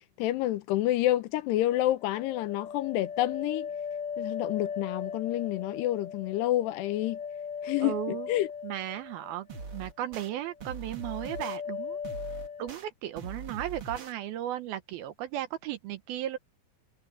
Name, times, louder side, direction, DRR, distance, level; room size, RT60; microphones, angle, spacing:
voice 1, 0.2-3.7 4.2-7.2 7.6-8.5, left 15 dB, 80° left, 2.9 m, -28 dB
sound 1, 1.7-9.8 10.1-10.7 11.0-12.8, left 6 dB, 55° left, 4.2 m, -38 dB
voice 2, 7.8-8.3 8.6-9.5 9.7-12.0 12.6-16.4, right 12 dB, 70° right, 2.6 m, -35 dB
sound 2, 9.5-10.3 10.6-11.6 12.0-12.8 13.2-14.1, right 4 dB, 45° right, 1.8 m, -41 dB
omnidirectional pair, 4.9 m